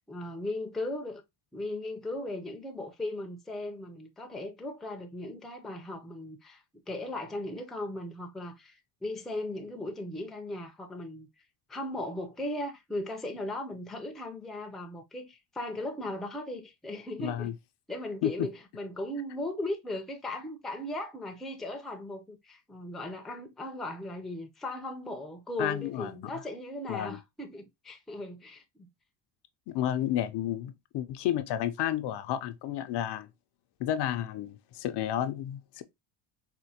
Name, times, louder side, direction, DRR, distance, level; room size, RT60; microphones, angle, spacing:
voice 1, 0.1-1.2 1.5-11.3 11.7-17.5 17.9-28.9, left 1 dB, ahead, 0.5 m, -37 dB
voice 2, 17.2-17.5 18.2-18.5 25.6-26.1 26.9-27.2 29.7-33.3 33.8-35.8, left 11 dB, 60° left, 0.5 m, -31 dB
4.3 x 2.1 x 2.7 m
cardioid pair, 120°, 48 cm